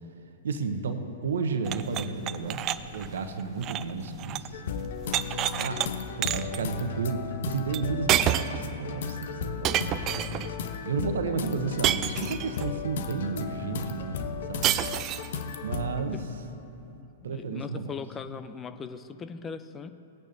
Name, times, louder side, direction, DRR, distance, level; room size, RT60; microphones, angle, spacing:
voice 1, 0.4-2.6 2.9-4.8 5.6-5.9 6.2-14.7 15.6-16.2 17.2-17.9, right 4 dB, 70° right, 8 dB, 0.9 m, -32 dB
sound 1, 1.6-4.6 4.8-5.9 6.2-6.6 7.7-7.8 8.1-8.7 9.6-10.5 11.8-12.7 14.6-15.4, right 12 dB, 35° right, 0.4 m, -28 dB
sound 2, 4.5-16.0, left 6 dB, 60° left, 0.8 m, -35 dB
voice 2, 17.0-19.9, left 6 dB, 20° left, 10 dB, 0.5 m, -39 dB
18.5 x 8.8 x 2.7 m, 2.9 s
hypercardioid pair, 110°, 0 cm